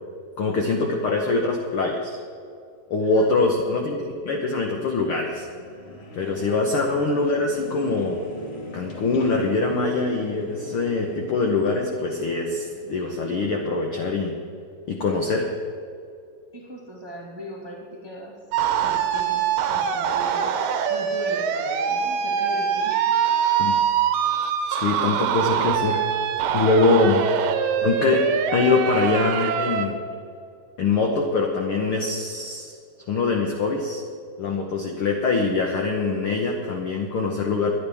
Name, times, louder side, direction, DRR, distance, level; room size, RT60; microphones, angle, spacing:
voice 1, 0.4-2.2 2.9-5.5 6.1-8.2 8.7-14.4 14.9-15.5 23.6-23.8 24.7-26.0 26.5-27.2 27.8-29.9 30.8-32.8 33.1-34.0 34.4-37.7, left 3 dB, 65° left, 1 dB, 1.4 m, -23 dB
voice 2, 3.0-3.6 6.5-6.8 16.5-18.5 18.8-23.3, equal, 30° right, -2 dB, 0.4 m, -39 dB
sound 1, 4.0-13.7, left 2 dB, 45° left, 2.2 m, -42 dB
sound 2, 18.5-29.9, right 8 dB, 85° right, 2.5 m, -24 dB
23.0 x 10.5 x 3.5 m, 2.4 s
omnidirectional pair, 3.7 m